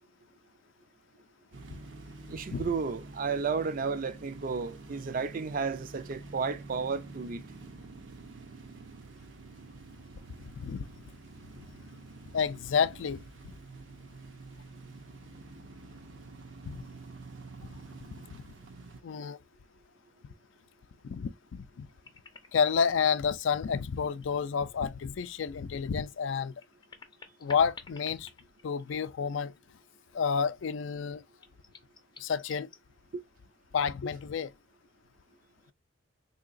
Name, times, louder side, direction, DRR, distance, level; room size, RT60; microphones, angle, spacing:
sound 1, 1.5-19.0, right 3 dB, 75° right, 0.7 m, -48 dB
voice 1, 2.3-7.4 33.1-33.2, right 5 dB, 45° right, 0.4 m, -32 dB
voice 2, 10.6-10.9 12.3-13.2 16.7-16.8 19.0-19.4 21.1-21.9 22.5-26.5 27.4-28.3 28.6-29.5 30.1-31.2 32.2-32.7 33.7-34.5, left 6 dB, 75° left, 0.4 m, -30 dB
sound 2, 21.6-22.9 23.4-24.4 24.8-24.9 26.3-29.3 29.6-29.7 31.4-32.8, left 5 dB, 25° left, 0.5 m, -51 dB
3.8 x 2.8 x 2.5 m
head